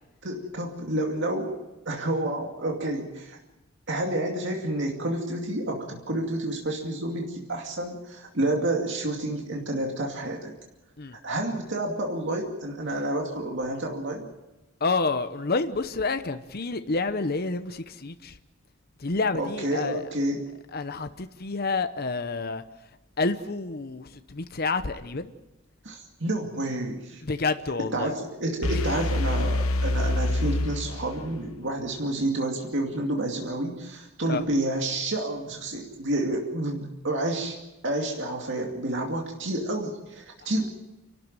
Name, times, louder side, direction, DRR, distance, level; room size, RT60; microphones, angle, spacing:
voice 1, 0.2-1.5 1.9-3.4 3.9-10.5 11.2-14.3 19.3-20.4 25.8-27.2 27.8-37.6 37.8-40.7, right 1 dB, 60° right, 1 dB, 2.5 m, -29 dB
voice 2, 14.8-18.3 19.0-20.0 20.7-22.6 23.2-25.3 27.2-28.1 28.7-28.8 34.3-34.4, left 3 dB, 45° left, 9 dB, 0.9 m, -29 dB
sound 1, 28.6-31.5, left 2 dB, 90° left, 1.0 m, -26 dB
29.0 x 12.5 x 9.1 m, 1.0 s
head